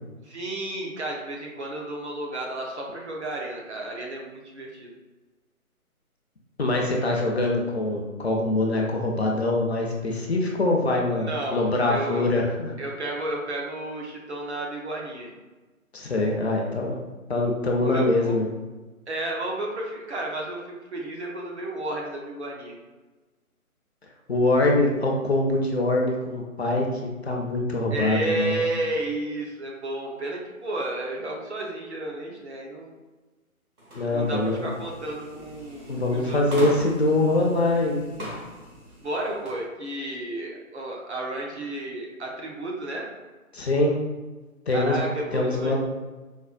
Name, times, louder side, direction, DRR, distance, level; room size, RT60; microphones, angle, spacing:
voice 1, 0.2-4.9 11.1-11.6 11.9-12.3 12.8-15.3 17.8-18.4 19.1-22.8 27.9-32.9 34.1-36.4 39.0-43.1 44.7-45.8, right 1 dB, 50° right, -1 dB, 0.7 m, -32 dB
voice 2, 6.6-12.7 15.9-17.0 17.3-18.5 24.3-28.6 34.0-34.7 35.9-38.3 43.5-44.0 44.7-45.1 45.3-45.8, left 2 dB, 50° left, 0 dB, 0.5 m, -24 dB
sound 1, 33.8-39.6, equal, 75° right, 1.3 m, -40 dB
4.2 x 2.1 x 2.4 m, 1.2 s
figure-of-eight pair, 155°, 44 cm